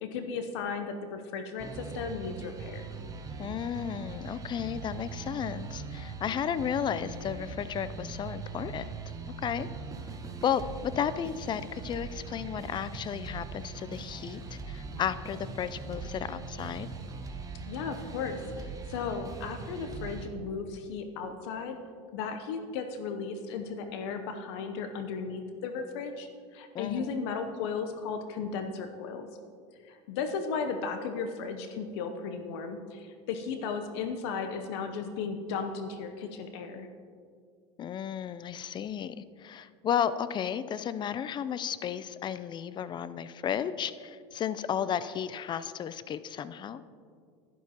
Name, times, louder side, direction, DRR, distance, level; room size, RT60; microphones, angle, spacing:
voice 1, 0.0-2.8 17.7-21.8 22.1-29.3 29.8-36.9, left 5 dB, 70° left, 7 dB, 0.8 m, -35 dB
heavy metal (looping), 1.6-20.3, right 4 dB, 25° right, 1.1 m, -41 dB
voice 2, 3.4-8.9 9.4-9.7 10.4-16.9 26.7-27.1 37.8-46.8, left 8 dB, 30° left, 14 dB, 0.5 m, -33 dB
12.0 x 11.0 x 2.9 m, 2.2 s
hypercardioid pair, 95°, 15 cm